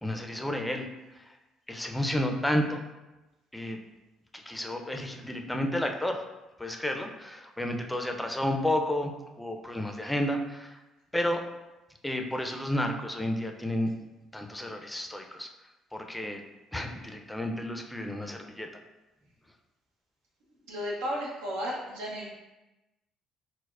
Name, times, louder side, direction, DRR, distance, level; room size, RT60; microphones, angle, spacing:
voice 1, 0.0-0.9 1.7-2.8 3.5-3.8 4.3-6.2 6.6-9.1 9.4-10.8 11.1-11.4 12.0-13.9 14.3-15.5 15.9-16.4 16.7-18.7, left 1 dB, 5° left, 4 dB, 0.4 m, -31 dB
voice 2, 20.7-22.3, equal, 90° right, -3 dB, 0.7 m, -33 dB
4.3 x 2.0 x 2.4 m, 1.0 s
supercardioid pair, 70°, 0 cm